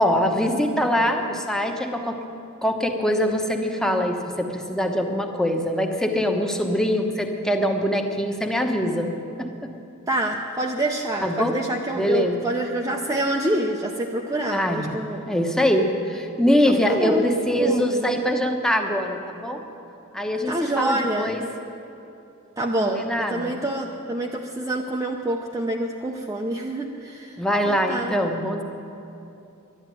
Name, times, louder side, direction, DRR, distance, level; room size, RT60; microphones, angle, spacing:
voice 1, 0.0-2.2 2.6-9.1 9.4-9.7 11.2-11.6 11.9-12.4 14.5-14.9 15.3-19.6 20.1-21.4 22.8-23.5 27.4-28.6, equal, 5° left, 3 dB, 0.9 m, -23 dB
voice 2, 10.1-15.2 16.7-17.3 17.6-18.0 20.5-21.5 22.6-28.2, right 1 dB, 15° right, 0 dB, 0.6 m, -27 dB
11.5 x 11.0 x 9.2 m, 2.9 s
head